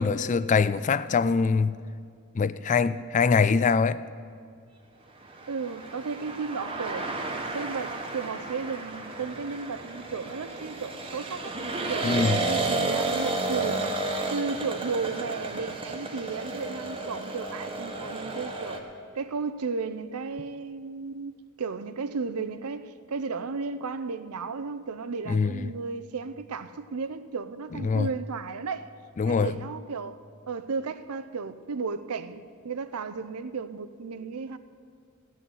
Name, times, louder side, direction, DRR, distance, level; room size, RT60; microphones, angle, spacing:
voice 1, 0.0-1.8 2.3-4.0 12.0-12.4 25.3-25.7 27.8-28.1 29.2-29.5, left 5 dB, 35° left, 0.3 m, -23 dB
sound 1, 5.3-18.8, right 2 dB, 25° right, 1.1 m, -32 dB
voice 2, 5.5-7.1 7.5-11.6 11.9-14.0 14.3-18.8 19.1-28.9 29.3-30.2 30.5-34.6, right 4 dB, 80° right, 0.6 m, -34 dB
15.5 x 6.3 x 9.2 m
head